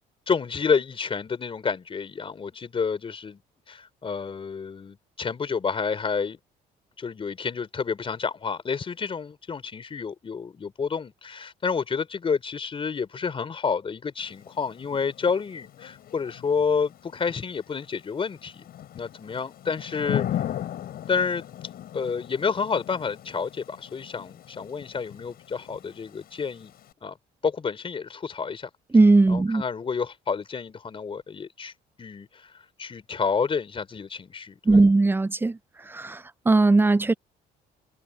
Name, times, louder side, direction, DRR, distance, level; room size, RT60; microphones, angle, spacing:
voice 1, 0.3-3.4 3.7-6.4 7.0-18.7 18.9-20.4 21.1-21.4 21.9-26.7 27.0-27.2 27.4-28.7 29.3-31.7 32.0-32.5 32.8-34.8, left 5 dB, 30° left, 3.9 m, -29 dB
Thunder / Rain, 14.2-26.9, left 11 dB, 65° left, 7.9 m, -38 dB
voice 2, 28.9-29.6 34.7-35.6 35.9-36.2 36.5-37.1, right 3 dB, 10° right, 0.5 m, -18 dB
cardioid pair, 110°, 17 cm